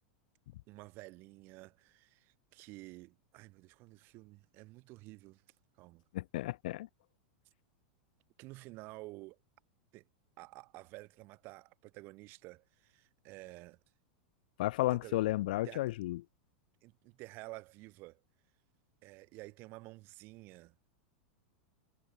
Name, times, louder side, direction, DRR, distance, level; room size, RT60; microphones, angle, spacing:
voice 1, 0.7-5.4 5.8-6.0 8.4-9.4 9.9-10.1 10.4-13.8 14.9-15.2 15.6-15.9 16.8-18.2 19.0-20.7, right 22 dB, 50° right, 6.1 m, -51 dB
voice 2, 6.1-6.9 14.6-16.2, left 17 dB, 65° left, 1.2 m, -33 dB
hypercardioid pair, 95°, 5 cm